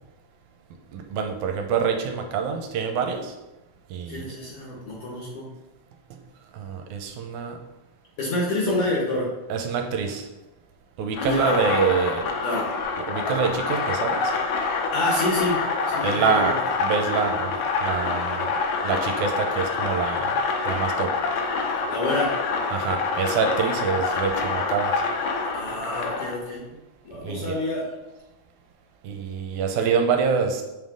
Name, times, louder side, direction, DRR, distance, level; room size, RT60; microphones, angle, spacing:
voice 1, 0.9-3.3 3.9-4.3 6.5-7.5 9.5-10.3 11.0-12.2 13.1-14.3 16.0-17.5 17.8-18.5 18.8-20.3 20.7-21.1 22.7-24.9 27.2-27.6 29.0-30.6, right 6 dB, 80° right, 4 dB, 1.9 m, -26 dB
voice 2, 4.1-5.5 8.2-9.3 11.2-11.5 12.4-12.6 14.9-16.5 21.9-22.3 25.5-26.6 27.0-27.8, left 2 dB, 60° left, -3 dB, 1.6 m, -27 dB
sound 1, 11.1-26.3, left 4 dB, 75° left, 2.0 m, -26 dB
7.3 x 3.7 x 3.6 m, 1.0 s
omnidirectional pair, 3.6 m